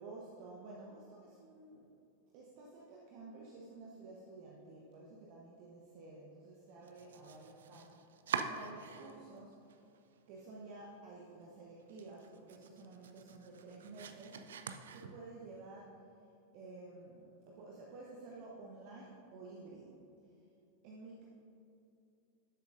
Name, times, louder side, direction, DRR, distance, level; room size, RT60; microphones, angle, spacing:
voice 1, 0.0-1.9 2.3-8.0 8.4-9.5 10.3-14.4 14.9-16.0 16.5-20.0 20.8-21.3, right 3 dB, 45° right, -3 dB, 1.0 m, -52 dB
Domestic sounds home sounds, 6.8-9.4 9.7-10.4 10.8-10.9 11.3-11.4 11.8-15.5, right 6 dB, 60° right, 0.4 m, -45 dB
12.5 x 7.2 x 2.6 m, 2.7 s
figure-of-eight pair, 90°, 0 cm